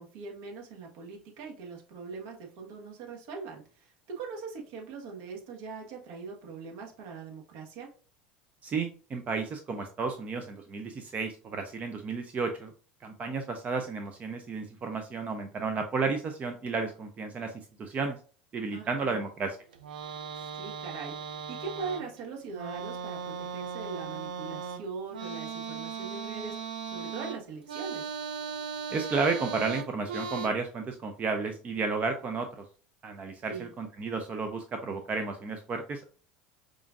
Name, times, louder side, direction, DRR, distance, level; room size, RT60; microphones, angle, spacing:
voice 1, 0.0-7.9 18.7-19.3 20.5-28.1 33.5-33.7, right 4 dB, 65° right, 1 dB, 1.3 m, -41 dB
voice 2, 8.6-12.7 13.0-18.2 18.5-19.6 28.9-32.6 33.0-36.1, right 4 dB, 35° right, 6 dB, 0.5 m, -32 dB
sound 1, 19.7-22.2 22.5-30.5, right 6 dB, 85° right, 0.5 m, -38 dB
4.9 x 2.5 x 2.5 m, 0.39 s
hypercardioid pair, 80°, 5 cm